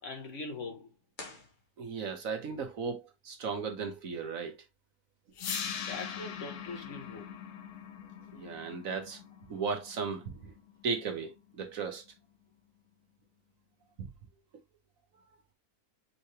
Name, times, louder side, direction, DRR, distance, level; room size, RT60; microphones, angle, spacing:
voice 1, 0.0-0.9 5.9-7.4, left 3 dB, 55° left, 1.4 m, -42 dB
sound 1, 1.1-2.3, left 2 dB, 35° left, 1.3 m, -49 dB
voice 2, 1.8-4.5 8.3-9.2 9.5-10.5 10.8-12.0 14.0-14.1, right 5 dB, 65° right, 1.4 m, -36 dB
sound 2, 5.4-11.4, left 7 dB, 80° left, 1.3 m, -42 dB
5.7 x 3.1 x 2.8 m
omnidirectional pair, 1.6 m